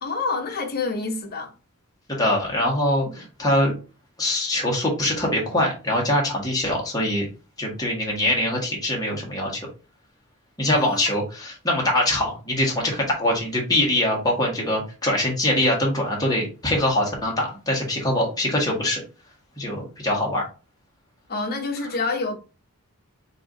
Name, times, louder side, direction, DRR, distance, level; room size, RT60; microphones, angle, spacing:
voice 1, 0.0-1.5 3.1-3.2 10.7-11.0 21.3-22.3, left 3 dB, 45° left, 1.1 m, -27 dB
voice 2, 2.1-3.7 4.2-7.3 7.6-9.7 10.6-19.0 19.6-20.4, left 1 dB, 15° left, 1.7 m, -23 dB
4.7 x 2.9 x 3.8 m
head